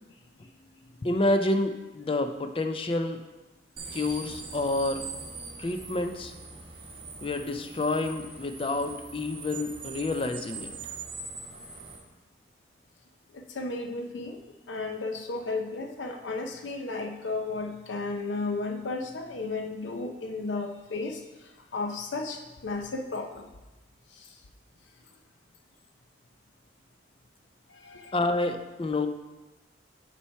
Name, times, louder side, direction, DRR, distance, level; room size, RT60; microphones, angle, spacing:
voice 1, 1.0-3.2 3.9-5.0 5.6-6.3 7.2-10.7 28.1-29.1, left 2 dB, 30° left, 7 dB, 0.4 m, -28 dB
sound 1, 3.8-12.0, right 4 dB, 30° right, 1.0 m, -42 dB
voice 2, 13.3-14.4 14.7-23.5 24.1-24.3 27.7-28.2, left 3 dB, 90° left, 4 dB, 0.6 m, -34 dB
7.2 x 4.4 x 4.6 m, 1.1 s
head